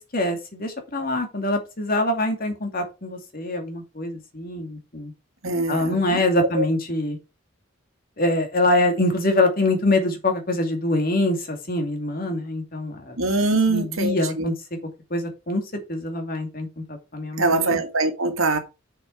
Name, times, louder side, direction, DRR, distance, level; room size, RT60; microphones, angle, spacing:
voice 1, 0.0-5.1 5.7-7.2 8.2-13.2 13.7-14.5 15.1-15.6 15.9-17.8, left 1 dB, 45° left, 2.5 m, -24 dB
voice 2, 5.4-6.2 6.6-6.7 13.2-14.5 17.4-18.6, right 2 dB, 90° right, 2.1 m, -23 dB
6.7 x 6.5 x 4.7 m
head